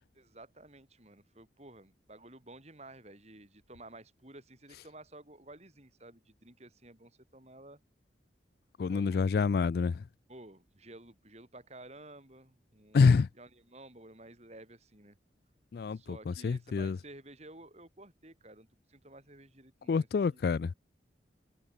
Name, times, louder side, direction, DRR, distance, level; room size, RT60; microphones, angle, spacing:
voice 1, 0.1-7.8 8.9-9.2 10.3-15.2 15.9-20.4, right 2 dB, 35° right, 6.2 m, -53 dB
voice 2, 8.8-10.0 12.9-13.3 15.7-17.0 19.9-20.7, left 5 dB, 55° left, 0.3 m, -27 dB
head